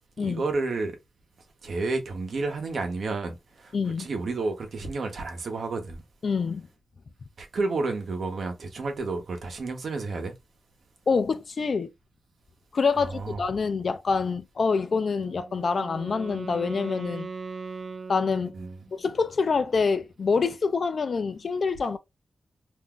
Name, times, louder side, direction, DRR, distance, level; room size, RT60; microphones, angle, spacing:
voice 1, 0.2-1.0 1.6-6.0 7.4-10.3 13.1-13.4 18.5-18.8, right 3 dB, 65° right, 0.9 m, -31 dB
voice 2, 3.7-4.1 6.2-6.7 11.1-11.9 12.7-17.3 18.1-18.5 18.9-22.0, left 5 dB, 55° left, 0.4 m, -26 dB
Wind instrument woodwind instrument, 15.1-19.0, right 4 dB, 35° right, 0.5 m, -39 dB
2.6 x 2.3 x 3.6 m
wide cardioid pair, 105°, 0 cm